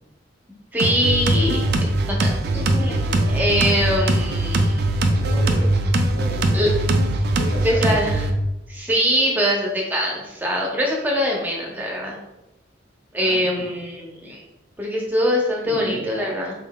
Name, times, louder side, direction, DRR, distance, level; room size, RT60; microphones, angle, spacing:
voice 1, 0.7-1.6 2.1-3.0 3.3-4.8 6.5-6.7 7.6-8.2 8.7-12.2 13.1-14.4 14.8-16.5, equal, 10° right, -2 dB, 0.6 m, -23 dB
sound 1, 0.8-8.3, right 1 dB, 50° right, 0.4 m, -21 dB
voice 2, 5.1-5.7 6.1-6.9 7.4-7.9 13.2-13.7 15.6-16.3, equal, 80° left, -3 dB, 1.2 m, -34 dB
3.7 x 3.7 x 2.2 m, 0.97 s
head